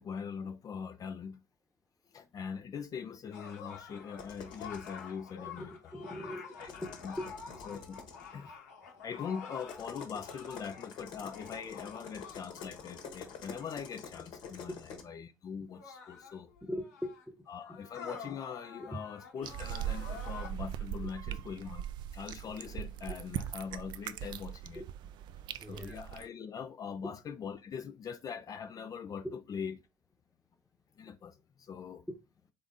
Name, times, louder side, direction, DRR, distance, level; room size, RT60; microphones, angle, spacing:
voice 1, 0.0-1.4 2.1-5.7 6.6-7.1 7.7-8.0 8.3-8.5 9.0-14.7 15.0-16.5 17.5-21.9 22.1-24.8 25.7-29.8 31.0-32.1, left 6 dB, 45° left, 0.5 m, -42 dB
sound 1, 3.3-14.1 15.0-15.1 15.7-20.5, left 5 dB, 85° left, 1.1 m, -49 dB
sound 2, 4.2-5.0 6.5-8.3 9.6-15.0, left 6 dB, 65° left, 1.2 m, -48 dB
voice 2, 5.6-7.3 14.7-14.8 15.6-15.7 16.6-17.8 18.9-19.0 23.1-23.2 24.8-24.9 25.6-26.0 27.0-27.1 29.2-29.3 32.1-32.2, equal, ahead, 0.9 m, -41 dB
sound 3, 19.4-26.3, right 11 dB, 60° right, 0.4 m, -40 dB
3.8 x 3.4 x 4.0 m
hypercardioid pair, 60°, 9 cm